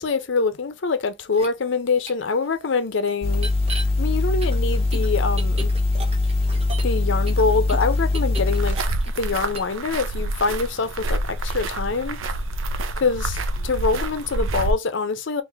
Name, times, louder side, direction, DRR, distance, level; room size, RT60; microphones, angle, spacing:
voice 1, 0.0-3.5 4.0-5.7 6.8-8.8 9.2-12.2 13.0-15.4, left 4 dB, 70° left, 0.6 m, -24 dB
sound 1, 1.3-1.5 2.1-2.2 3.3-3.8 4.4-7.0 7.3-9.2 9.5-9.7, right 2 dB, 30° right, 1.0 m, -35 dB
sound 2, 3.2-8.7, left 2 dB, 30° left, 0.7 m, -22 dB
sound 3, 8.5-14.7, right 2 dB, 90° right, 0.5 m, -27 dB
3.5 x 2.5 x 3.4 m
head